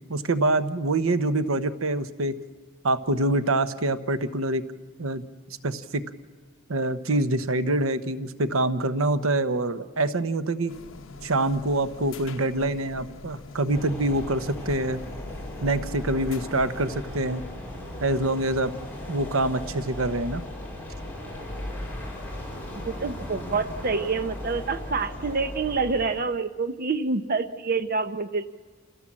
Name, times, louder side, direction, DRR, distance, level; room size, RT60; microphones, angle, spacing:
voice 1, 0.0-2.3 2.8-4.6 5.0-5.2 5.6-6.0 6.7-10.7 11.2-15.0 15.6-17.4 18.0-18.7 19.1-20.4, right 2 dB, 85° right, 11 dB, 1.0 m, -25 dB
sound 1, 10.7-16.9, left 3 dB, 70° left, 1.0 m, -43 dB
sound 2, 13.7-26.2, left 1 dB, 10° left, 4.2 m, -37 dB
voice 2, 22.7-28.5, right 4 dB, 45° right, 10 dB, 0.8 m, -27 dB
28.5 x 16.5 x 7.5 m, 1.5 s
head